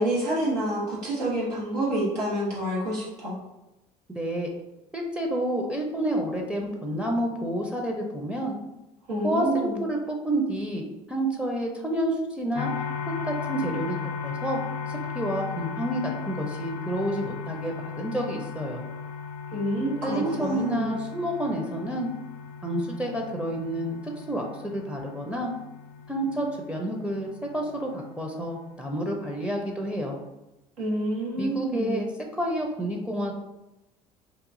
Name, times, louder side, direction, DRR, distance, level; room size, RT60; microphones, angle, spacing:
voice 1, 0.0-3.4 9.1-9.8 19.5-20.9 30.8-32.0, right 1 dB, 90° right, -6 dB, 0.7 m, -28 dB
voice 2, 4.1-4.5 4.9-8.6 9.2-12.7 13.2-14.0 14.2-14.6 14.9-18.8 20.0-22.1 22.6-25.5 26.1-30.2 31.4-32.1 32.4-33.3, right 1 dB, 5° right, 0 dB, 0.5 m, -29 dB
sound 1, 12.5-30.3, left 6 dB, 75° left, 0.4 m, -37 dB
2.9 x 2.4 x 2.5 m, 0.96 s
hypercardioid pair, 60°, 20 cm